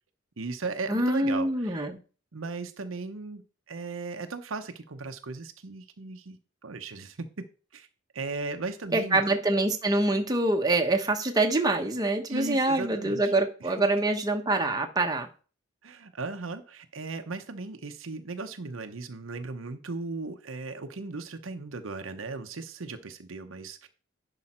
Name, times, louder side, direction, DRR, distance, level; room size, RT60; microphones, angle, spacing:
voice 1, 0.4-1.9 2.3-6.4 6.6-7.4 7.7-7.9 8.1-9.4 12.3-13.3 13.6-13.7 15.8-23.9, right 3 dB, 75° right, 0.8 m, -37 dB
voice 2, 0.9-2.0 8.9-15.3, right 2 dB, 20° right, 1.1 m, -25 dB
11.0 x 4.8 x 4.3 m
head